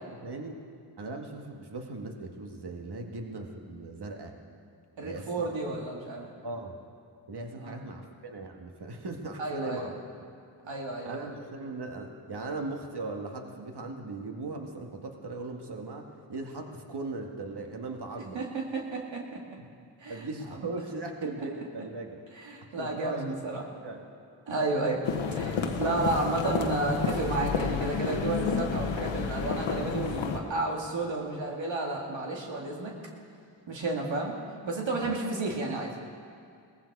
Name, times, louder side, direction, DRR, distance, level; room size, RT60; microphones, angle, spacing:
voice 1, 0.2-0.5 1.0-4.3 5.0-5.8 6.4-6.8 7.3-10.0 11.1-18.4 19.6-19.7 20.1-22.2 22.8-23.2 23.8-24.1 35.0-35.1, right 3 dB, 60° right, 2 dB, 2.0 m, -38 dB
voice 2, 5.0-6.3 7.6-7.8 9.4-9.9 10.6-11.3 18.3-19.6 20.0-20.6 22.3-23.6 24.5-25.0 25.3-32.9 33.7-34.3 34.6-36.0, right 2 dB, 75° right, -1 dB, 2.3 m, -32 dB
sound 1, 25.0-30.4, left 6 dB, 90° left, 1.1 m, -30 dB
18.5 x 14.5 x 4.8 m, 2.3 s
cardioid pair, 45°, 45 cm